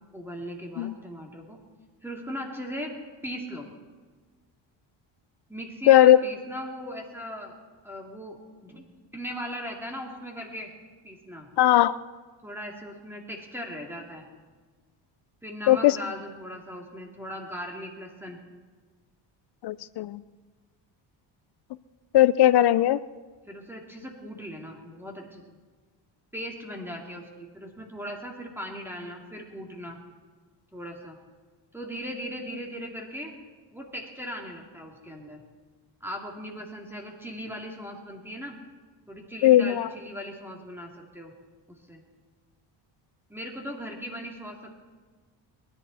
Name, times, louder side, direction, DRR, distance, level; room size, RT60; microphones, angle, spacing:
voice 1, 0.1-1.6 2.0-2.9 3.2-3.7 5.5-7.6 7.8-8.8 9.1-10.7 11.0-11.5 12.4-14.2 15.4-18.4 23.5-25.6 26.3-30.0 30.7-31.2 31.7-33.3 33.7-35.4 36.0-38.6 39.1-41.3 41.7-42.0 43.3-44.7, equal, 5° right, 0 dB, 2.8 m, -38 dB
voice 2, 5.9-6.2 11.6-11.9 15.7-16.0 19.6-20.2 22.1-23.0 39.4-39.9, left 13 dB, 55° left, 17 dB, 0.6 m, -18 dB
21.5 x 11.5 x 4.2 m, 1.4 s
supercardioid pair, 75°, 48 cm